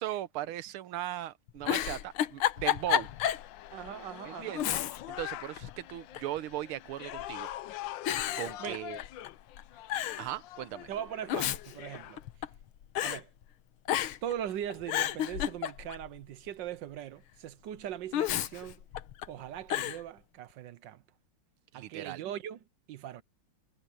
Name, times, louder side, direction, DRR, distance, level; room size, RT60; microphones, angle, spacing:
voice 1, 0.0-3.1 4.2-4.7 5.1-7.5 8.4-9.0 10.2-10.9 21.7-22.2, right 13 dB, 85° right, 1.7 m, -38 dB
Giggle, 1.5-3.5 3.9-4.0 4.5-5.2 5.6-6.4 7.1-7.5 8.1-9.3 9.6-9.7 9.9-10.3 11.1-12.6 13.0-13.2 13.9-14.3 14.7-16.1 18.1-19.3 19.7-20.0, left 11 dB, 90° left, 1.8 m, -31 dB
sound 1, 2.0-12.2, left 14 dB, 70° left, 1.3 m, -44 dB
voice 2, 3.7-4.8 8.6-8.8 10.9-12.2 13.0-13.3 14.2-18.8 19.3-21.0 21.7-22.6 22.9-23.2, right 10 dB, 70° right, 1.4 m, -40 dB
omnidirectional pair, 2.3 m